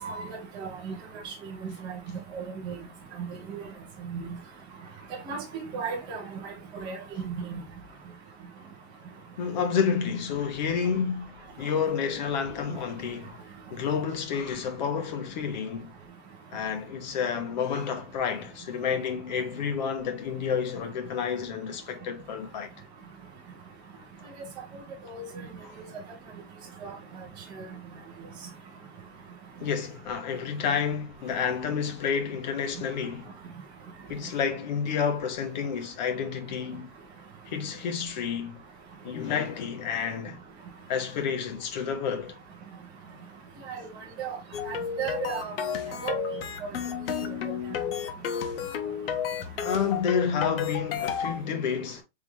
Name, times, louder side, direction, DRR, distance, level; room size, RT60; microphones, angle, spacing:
voice 1, 0.0-0.9 1.6-2.0 2.3-2.7 3.5-3.6 4.1-4.4 5.3-5.4 5.7-6.2 6.8-7.0 7.2-7.6 25.1-25.2 26.8-26.9 43.7-43.8 44.2-44.4 44.7-45.5 46.0-46.2, right 6 dB, 15° right, 0.8 m, -34 dB
voice 2, 9.4-13.4 13.7-15.9 16.5-22.7 25.6-25.7 29.6-33.3 34.1-36.9 37.5-38.6 39.0-40.4 40.9-42.4 45.8-46.0 49.6-52.0, left 6 dB, 45° left, 1.0 m, -30 dB
sound 1, 44.5-51.4, left 7 dB, 65° left, 0.9 m, -32 dB
3.7 x 3.3 x 3.1 m
supercardioid pair, 170°, 32 cm